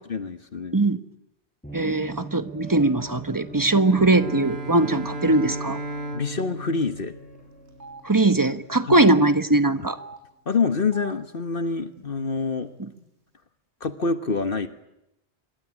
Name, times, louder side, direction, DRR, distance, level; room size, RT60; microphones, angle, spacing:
voice 1, 0.1-0.8 6.1-7.1 8.8-9.0 10.5-12.7 13.8-14.7, left 4 dB, 55° left, 10 dB, 1.4 m, -26 dB
sound 1, 1.6-9.0, right 1 dB, 5° left, 4.9 m, -42 dB
voice 2, 1.7-5.8 8.0-10.0, right 2 dB, 20° right, 11 dB, 1.1 m, -20 dB
Bowed string instrument, 3.8-7.9, right 1 dB, 70° right, 3.3 m, -35 dB
Telephone, 4.9-5.1 5.4-5.5 6.4-6.5 6.8-6.9 7.7-8.0 8.8-9.1 9.9-10.2 10.8-11.1 11.9-12.0 12.3-13.0, right 3 dB, 90° right, 5.7 m, -44 dB
26.5 x 22.0 x 9.9 m, 0.86 s
omnidirectional pair, 1.1 m